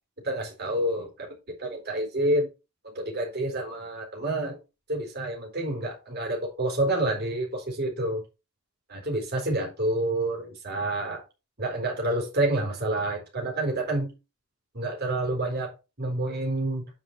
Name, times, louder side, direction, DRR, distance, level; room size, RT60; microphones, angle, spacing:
voice 1, 0.2-1.3 1.6-2.5 2.9-4.6 4.9-8.2 8.9-11.2 11.6-14.1 14.7-16.9, right 1 dB, 45° right, 4.1 m, -28 dB
9.9 x 5.4 x 4.7 m
head